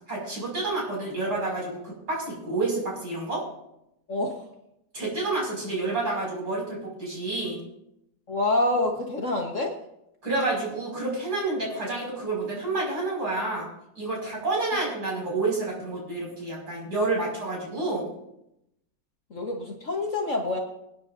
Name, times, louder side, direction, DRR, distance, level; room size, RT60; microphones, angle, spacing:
voice 1, 0.1-3.4 4.9-7.6 10.2-13.7 14.0-18.1, right 2 dB, 55° right, -4 dB, 6.4 m, -29 dB
voice 2, 8.3-9.7 19.3-20.6, left 2 dB, 45° left, 1 dB, 1.4 m, -26 dB
26.0 x 9.4 x 2.6 m, 0.82 s
omnidirectional pair, 2.0 m